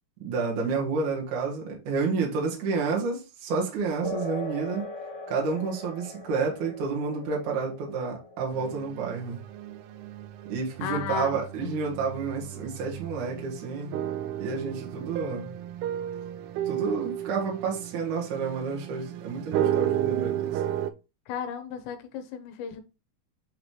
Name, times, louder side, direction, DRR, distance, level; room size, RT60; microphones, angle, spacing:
voice 1, 0.2-4.9 5.3-9.4 10.5-14.0 14.4-15.5 16.7-20.6, right 4 dB, 55° right, 2.9 m, -30 dB
sound 1, 4.0-12.0, left 1 dB, 35° left, 1.3 m, -41 dB
sound 2, 8.5-20.9, right 11 dB, 85° right, 2.3 m, -33 dB
voice 2, 10.8-11.8 21.3-22.8, left 7 dB, 80° left, 3.0 m, -34 dB
9.3 x 3.8 x 3.2 m
omnidirectional pair, 4.9 m